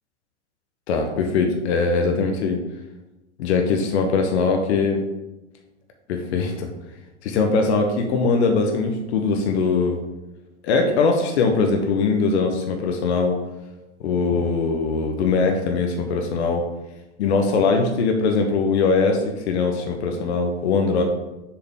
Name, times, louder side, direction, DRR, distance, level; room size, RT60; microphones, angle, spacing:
voice 1, 0.9-2.6 3.4-5.0 6.1-6.7 7.2-10.0 10.6-13.4 14.0-16.7 17.2-21.0, left 4 dB, 65° left, 3 dB, 0.9 m, -21 dB
6.9 x 3.8 x 3.7 m, 1.0 s
hypercardioid pair, 95°, 35 cm